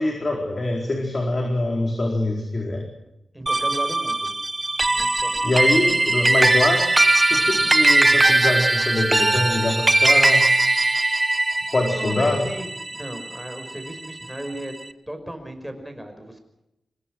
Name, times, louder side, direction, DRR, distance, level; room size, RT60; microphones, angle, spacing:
voice 1, 0.0-2.8 5.4-6.9 7.2-10.5 11.7-12.4, left 2 dB, 40° left, 2 dB, 4.5 m, -24 dB
voice 2, 3.3-4.3 4.7-5.5 11.9-14.7 15.1-16.4, right 1 dB, 5° right, 6 dB, 5.4 m, -36 dB
sound 1, 3.5-14.1, right 2 dB, 25° right, 1.1 m, -20 dB
25.0 x 21.5 x 6.3 m, 0.88 s
wide cardioid pair, 115°, 0 cm